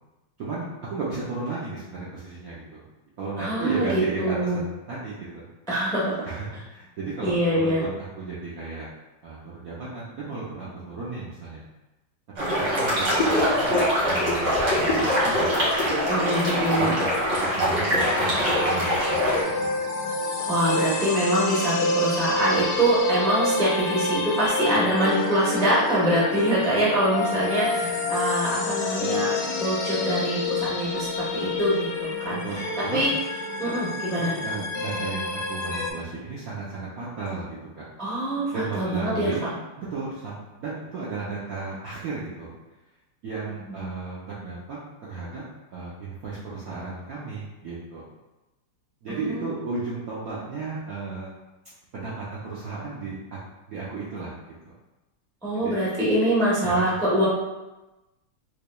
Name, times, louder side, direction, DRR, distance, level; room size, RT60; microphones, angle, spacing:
voice 1, 0.4-2.8 3.2-5.5 6.3-8.9 9.2-11.6 12.5-15.5 15.8-16.0 16.7-17.1 17.5-19.8 32.4-33.1 34.1-37.9 38.5-42.5 43.2-45.4 45.7-48.0 49.0-51.3 51.9-53.4 53.7-54.4 54.6-54.7 55.5-55.8 56.6-56.8, right 3 dB, 70° right, -8 dB, 0.8 m, -34 dB
voice 2, 3.4-4.6 5.7-6.1 7.2-7.8 16.1-16.9 20.4-29.3 29.6-33.1 33.6-34.3 38.0-39.3 49.1-49.4 55.4-57.2, right 1 dB, 5° left, -7 dB, 0.3 m, -24 dB
sound 1, 12.4-19.4, equal, 45° right, 1.7 m, -23 dB
sound 2, 18.0-35.9, left 3 dB, 70° left, 0.9 m, -28 dB
4.9 x 3.1 x 2.2 m, 1.0 s
omnidirectional pair, 2.3 m